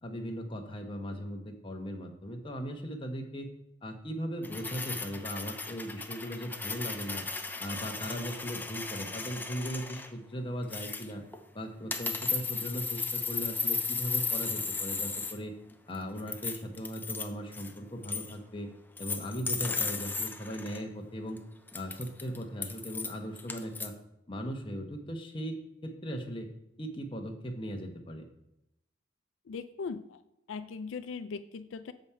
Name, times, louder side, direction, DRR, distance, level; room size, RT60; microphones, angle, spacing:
voice 1, 0.0-3.5 3.8-7.2 7.6-11.2 11.5-15.5 15.9-18.7 19.0-21.4 21.7-23.9 24.3-26.5 26.8-28.2, equal, 25° left, 3 dB, 1.0 m, -38 dB
sound 1, 4.4-10.1 10.7-11.4 11.9-15.4 15.7-17.3 17.5-17.8 18.0-18.3 19.0-20.8 21.4-21.5 21.7-23.9, left 4 dB, 10° left, 0.5 m, -35 dB
voice 2, 29.5-30.2 30.5-31.9, left 5 dB, 85° left, 11 dB, 0.4 m, -39 dB
7.3 x 5.2 x 5.6 m, 0.85 s
head